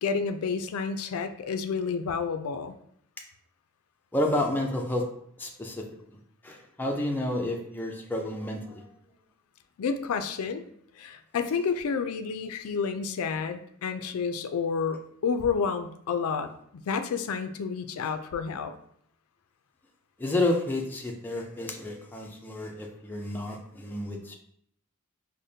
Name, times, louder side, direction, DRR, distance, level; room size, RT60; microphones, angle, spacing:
voice 1, 0.0-2.8 9.8-10.6 11.0-18.7, left 5 dB, 70° left, 8 dB, 0.4 m, -30 dB
voice 2, 4.1-5.1 5.4-6.2 6.4-8.9 20.2-24.4, left 1 dB, 10° left, 0 dB, 0.4 m, -30 dB
4.9 x 2.1 x 2.7 m, 0.69 s
head